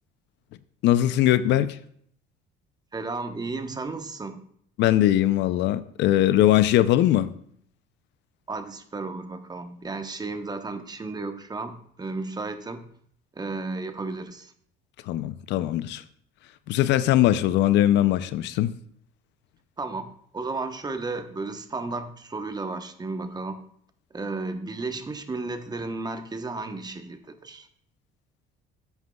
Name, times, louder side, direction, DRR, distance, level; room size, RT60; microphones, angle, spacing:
voice 1, 0.8-1.8 4.8-7.3 15.1-16.0 16.7-18.7, left 13 dB, 65° left, 0.5 m, -21 dB
voice 2, 2.9-4.4 8.5-12.9 13.3-14.5 19.8-23.6 24.1-27.7, right 3 dB, 20° right, 1.0 m, -33 dB
13.0 x 8.1 x 2.3 m
supercardioid pair, 95°, 19 cm